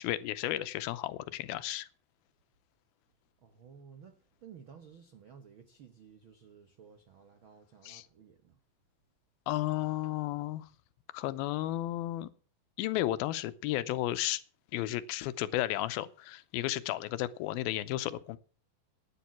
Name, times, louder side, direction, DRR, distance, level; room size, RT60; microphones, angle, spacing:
voice 1, 0.0-1.9 7.8-8.1 9.5-10.7 11.1-12.3 12.8-14.4 14.7-18.4, left 15 dB, 90° left, 2.6 m, -33 dB
voice 2, 3.4-8.6, right 7 dB, 85° right, 1.1 m, -55 dB
11.5 x 10.0 x 6.0 m
omnidirectional pair, 4.2 m